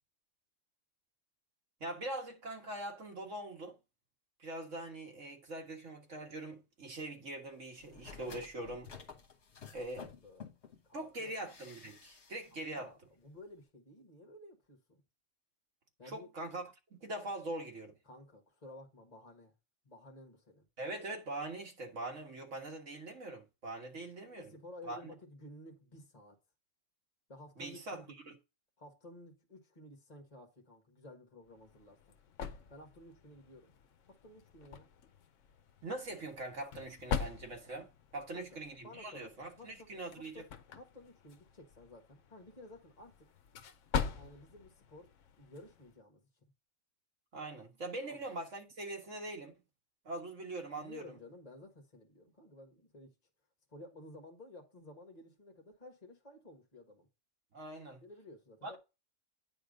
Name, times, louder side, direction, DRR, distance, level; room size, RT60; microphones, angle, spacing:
voice 1, 1.8-3.8 4.4-8.9 9.7-10.1 10.9-12.9 16.0-16.6 17.0-17.9 20.8-24.5 24.9-25.0 27.6-28.3 35.8-40.4 47.3-49.5 50.1-51.0 57.5-58.0 58.6-58.8, right 2 dB, 70° right, 2.0 m, -42 dB
sound 1, 7.8-10.8 11.4-12.5 12.8-12.9, left 6 dB, 60° left, 1.5 m, -52 dB
voice 2, 9.7-10.5 10.8-11.3 12.5-15.0 16.0-16.3 18.0-19.5 19.8-20.6 24.3-26.4 27.3-28.2 28.8-32.1 32.7-33.7 34.1-34.9 38.1-39.9 40.1-43.1 44.1-45.1 45.4-46.5 48.1-48.2 50.8-53.1 53.7-57.1 58.0-58.8, left 1 dB, 30° left, 1.7 m, -54 dB
sound 2, 31.5-46.0, left 6 dB, 75° left, 1.1 m, -43 dB
9.3 x 3.6 x 5.1 m
omnidirectional pair, 1.3 m